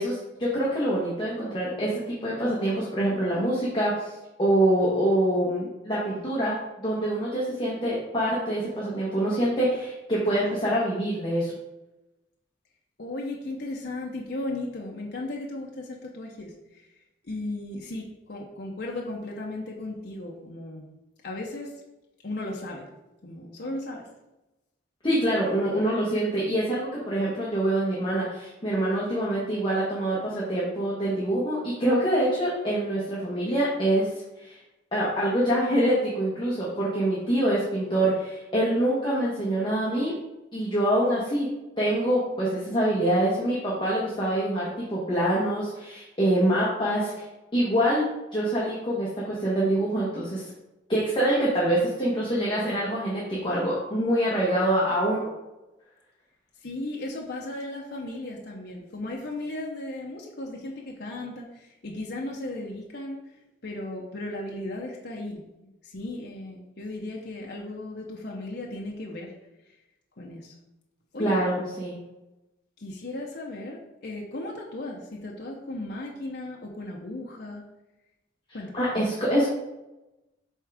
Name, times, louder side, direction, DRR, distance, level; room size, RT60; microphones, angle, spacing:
voice 1, 0.0-4.1 4.4-11.5 25.0-34.1 34.4-34.6 34.9-40.1 40.5-41.5 41.8-47.2 47.5-48.0 48.3-50.4 50.9-55.3 71.2-72.0 78.7-79.5, right 1 dB, 25° left, -7 dB, 1.2 m, -25 dB
voice 2, 13.0-16.9 17.2-20.8 21.2-21.7 22.2-22.9 23.2-24.1 56.6-63.2 63.6-69.3 70.2-70.5 71.1-71.4 72.8-77.6 78.5-78.7, left 2 dB, 55° left, -1 dB, 0.8 m, -36 dB
8.1 x 3.7 x 3.5 m, 0.98 s
head